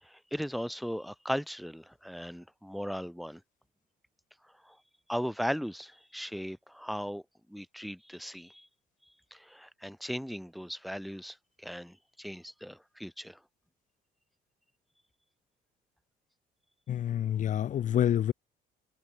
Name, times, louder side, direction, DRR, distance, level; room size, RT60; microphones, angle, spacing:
voice 1, 0.0-3.4 4.6-4.8 5.1-7.2 7.5-8.7 9.3-13.4, equal, ahead, 1.6 m, -37 dB
voice 2, 16.9-18.3, left 10 dB, 50° left, 0.8 m, -27 dB
cardioid pair, 110°, 17 cm